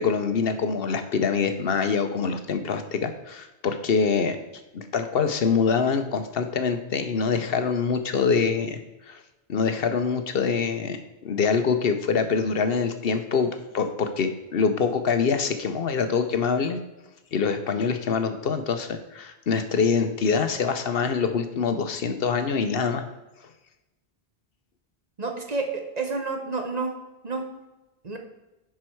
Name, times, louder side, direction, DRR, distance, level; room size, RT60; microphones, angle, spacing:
voice 1, 0.0-4.4 4.7-8.8 9.1-9.2 9.5-11.0 11.2-13.5 13.7-16.8 17.3-23.0, left 5 dB, 70° left, 8 dB, 1.0 m, -25 dB
voice 2, 25.2-26.9 27.2-27.4 28.0-28.2, right 3 dB, 40° right, 4 dB, 1.1 m, -29 dB
10.5 x 4.7 x 4.5 m, 1.0 s
omnidirectional pair, 1.1 m